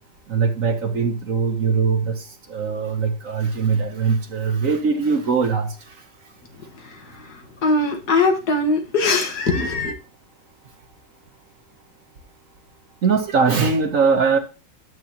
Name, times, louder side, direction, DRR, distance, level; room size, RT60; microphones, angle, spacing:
voice 1, 0.3-2.2 2.5-5.7 13.0-14.4, right 5 dB, 55° right, 1.2 m, -21 dB
voice 2, 6.5-9.9, left 3 dB, 60° left, 1.8 m, -22 dB
11.0 x 7.4 x 2.8 m
omnidirectional pair, 2.0 m